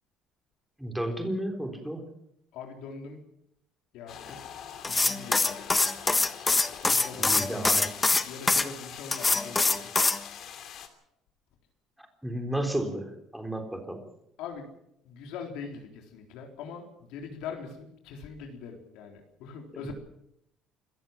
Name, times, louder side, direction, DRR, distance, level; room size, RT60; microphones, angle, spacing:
voice 1, 0.8-2.0 7.2-7.9 12.2-14.0 19.7-19.9, right 1 dB, 5° right, 4 dB, 3.8 m, -33 dB
voice 2, 2.5-3.2 3.9-5.8 6.8-7.6 8.2-9.9 14.4-14.7 15.0-19.9, left 5 dB, 80° left, 3 dB, 3.8 m, -42 dB
sound 1, 4.1-10.9, left 9 dB, 60° left, 2.9 m, -44 dB
sound 2, 4.8-8.7 9.1-10.2, left 3 dB, 20° left, 1.3 m, -24 dB
26.0 x 14.0 x 7.4 m, 0.77 s
cardioid pair, 105°, 0 cm